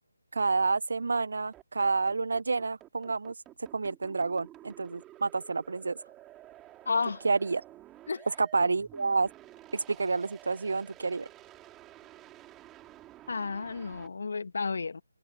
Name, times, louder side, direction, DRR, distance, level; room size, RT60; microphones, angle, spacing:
voice 1, 0.3-3.3 3.7-6.0 7.2-7.6 8.4-9.3 9.7-11.3, right 4 dB, 55° right, 0.8 m, -29 dB
sound 1, 1.5-14.1, right 14 dB, 10° right, 5.1 m, -52 dB
voice 2, 6.9-7.2 8.1-8.3 13.3-15.0, left 4 dB, 55° left, 1.8 m, -32 dB
open air
figure-of-eight pair, 150°, 0 cm